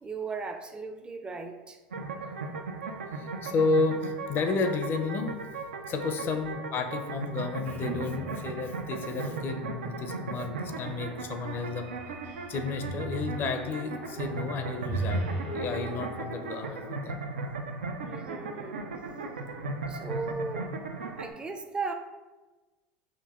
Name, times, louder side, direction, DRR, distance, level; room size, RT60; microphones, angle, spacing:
voice 1, 0.0-1.8 6.1-6.4 18.0-18.8 19.1-19.2 19.9-20.7 21.2-21.9, right 4 dB, 15° right, 5 dB, 0.4 m, -37 dB
sound 1, 1.9-21.3, right 3 dB, 90° right, 0.3 m, -37 dB
voice 2, 2.9-5.4 5.9-11.9 12.5-17.1, left 4 dB, 40° left, 7 dB, 0.4 m, -32 dB
sound 2, 7.6-8.7 9.0-9.6 10.3-16.3, right 2 dB, 45° right, 0.9 m, -38 dB
5.1 x 2.5 x 2.3 m, 1.2 s
hypercardioid pair, 85°, 5 cm